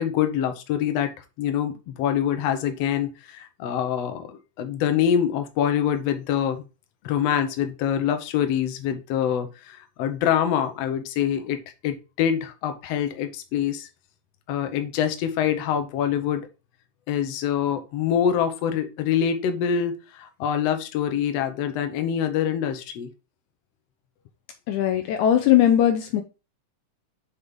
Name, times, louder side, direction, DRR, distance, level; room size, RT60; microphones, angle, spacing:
voice 1, 0.0-6.6 7.0-13.9 14.5-16.5 17.1-23.1, left 9 dB, 65° left, 1.8 m, -25 dB
voice 2, 24.7-26.2, left 11 dB, 80° left, 2.0 m, -19 dB
6.3 x 5.2 x 3.6 m
omnidirectional pair, 3.7 m